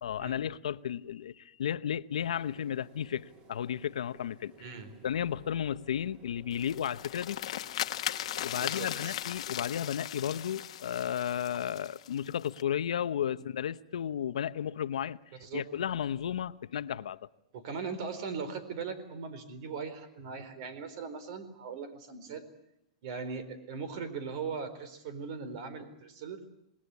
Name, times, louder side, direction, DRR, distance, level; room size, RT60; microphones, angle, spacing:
voice 1, 0.0-4.7 5.0-7.4 8.4-15.2 15.5-17.3, left 9 dB, 85° left, 0.9 m, -33 dB
sound 1, 2.1-10.1, right 4 dB, 25° right, 3.3 m, -58 dB
voice 2, 4.6-4.9 8.6-9.2 15.4-15.6 17.5-22.4 23.0-26.4, right 5 dB, 55° right, 4.2 m, -39 dB
sound 2, 6.5-12.6, left 12 dB, 70° left, 1.3 m, -38 dB
27.0 x 20.0 x 8.4 m
hypercardioid pair, 145°, 3 cm